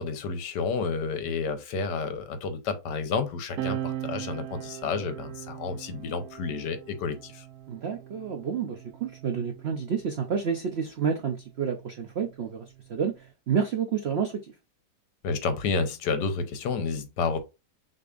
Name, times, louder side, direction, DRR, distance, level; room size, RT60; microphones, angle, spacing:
voice 1, 0.0-7.4 15.2-17.4, left 4 dB, 75° left, 1.4 m, -30 dB
sound 1, 3.6-10.5 11.5-13.3, right 11 dB, 70° right, 1.0 m, -40 dB
voice 2, 7.7-14.5, right 7 dB, 85° right, 0.5 m, -30 dB
6.3 x 2.8 x 2.4 m
omnidirectional pair, 1.9 m